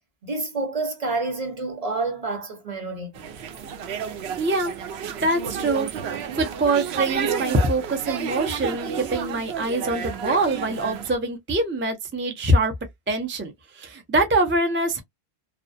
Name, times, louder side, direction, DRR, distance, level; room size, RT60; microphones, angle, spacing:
voice 1, 0.2-3.3, right 3 dB, 40° right, 0.8 m, -28 dB
sound 1, 3.1-11.2, right 7 dB, 85° right, 0.8 m, -31 dB
voice 2, 4.4-4.7 5.2-5.9 6.4-12.7 13.1-15.0, right 2 dB, 20° right, 0.3 m, -24 dB
2.3 x 2.1 x 2.5 m
omnidirectional pair, 1.0 m